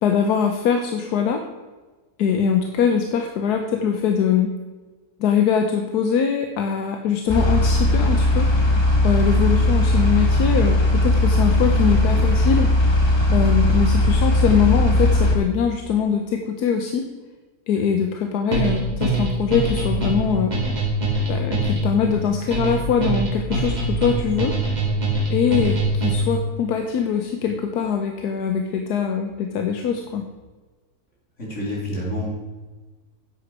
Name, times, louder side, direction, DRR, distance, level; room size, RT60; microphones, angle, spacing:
voice 1, 0.0-1.4 2.2-4.6 5.2-8.5 9.0-12.7 13.3-17.1 17.7-20.6 21.3-24.6 25.3-30.2, left 7 dB, 85° left, 4 dB, 1.3 m, -22 dB
sound 1, 7.3-15.4, left 1 dB, 20° left, 1.2 m, -18 dB
sound 2, 18.5-26.4, right 2 dB, 25° right, 2.7 m, -23 dB
voice 2, 31.4-32.3, left 1 dB, 50° left, -5 dB, 3.8 m, -28 dB
10.5 x 7.9 x 4.7 m, 1.3 s
omnidirectional pair, 1.7 m